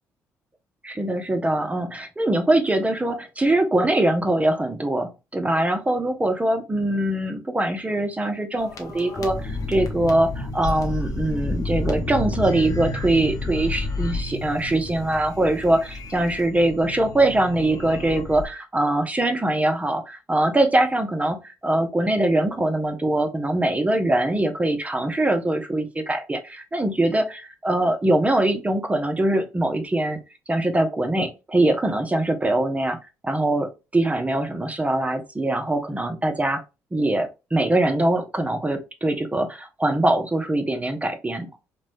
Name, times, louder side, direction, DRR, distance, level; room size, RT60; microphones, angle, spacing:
voice 1, 0.8-30.2 30.5-33.0 33.2-36.6 36.9-41.5, right 1 dB, 20° right, 6 dB, 0.7 m, -22 dB
sound 1, 8.6-18.4, left 2 dB, 45° left, 0.9 m, -30 dB
3.0 x 2.2 x 2.6 m, 0.28 s
hypercardioid pair, 50°, 8 cm